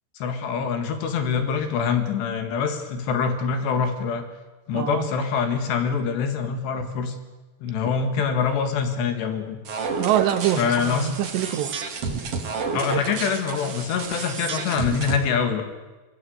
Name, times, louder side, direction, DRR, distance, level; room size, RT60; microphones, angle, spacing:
voice 1, 0.2-4.3 4.7-7.2 7.6-9.6 10.6-11.2 12.7-15.6, left 6 dB, 70° left, 7 dB, 4.0 m, -25 dB
voice 2, 4.7-5.1 7.9-8.0 10.0-11.8, right 12 dB, 75° right, 9 dB, 3.4 m, -25 dB
sound 1, 9.6-15.2, right 5 dB, 45° right, 2.1 m, -30 dB
24.5 x 19.5 x 8.1 m, 1.2 s
omnidirectional pair, 5.2 m